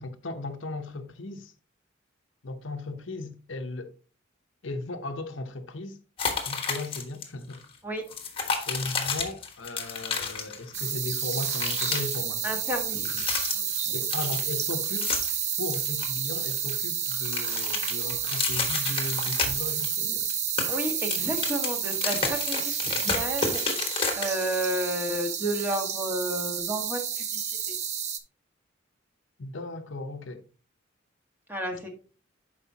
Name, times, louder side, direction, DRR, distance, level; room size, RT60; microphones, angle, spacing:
voice 1, 0.0-1.5 2.4-3.9 4.6-6.0 6.5-7.6 8.7-12.5 13.9-15.3 15.6-20.3 29.4-30.5, left 2 dB, 80° left, 0.8 m, -36 dB
sound 1, 6.2-7.2 7.5-7.7 8.1-10.9 11.1-12.2 12.9-13.8 14.1-15.4 15.7-16.8 17.1-19.9 20.2-24.5, left 5 dB, 30° left, 1.4 m, -31 dB
sound 2, 10.7-28.2, right 8 dB, 35° right, 0.7 m, -30 dB
voice 2, 12.4-13.2 13.5-13.9 20.7-23.6 24.2-27.6 31.5-31.9, right 1 dB, 10° right, 1.6 m, -32 dB
11.0 x 4.9 x 2.8 m
head